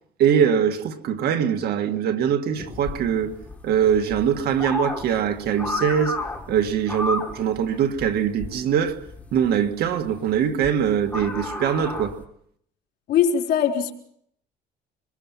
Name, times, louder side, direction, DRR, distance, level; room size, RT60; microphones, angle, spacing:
voice 1, 0.2-3.3 3.6-9.0 9.3-12.2, right 8 dB, 70° right, 1.9 m, -22 dB
sound 1, 2.6-12.2, left 2 dB, 10° left, 3.0 m, -33 dB
voice 2, 13.1-13.9, left 8 dB, 70° left, 3.9 m, -20 dB
25.5 x 21.5 x 5.8 m
cardioid pair, 110°, 17 cm